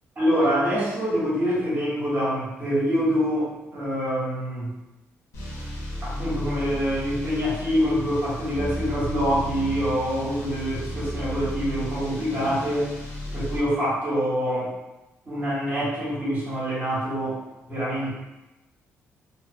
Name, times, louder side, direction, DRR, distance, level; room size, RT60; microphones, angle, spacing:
voice 1, 0.2-4.7 6.0-12.9 13.3-14.7 15.2-17.4 17.7-18.1, equal, 35° right, -7 dB, 1.2 m, -25 dB
sound 1, 5.3-13.6, equal, 70° left, 0.7 m, -33 dB
2.5 x 2.2 x 2.4 m, 1.0 s
cardioid pair, 120°, 5 cm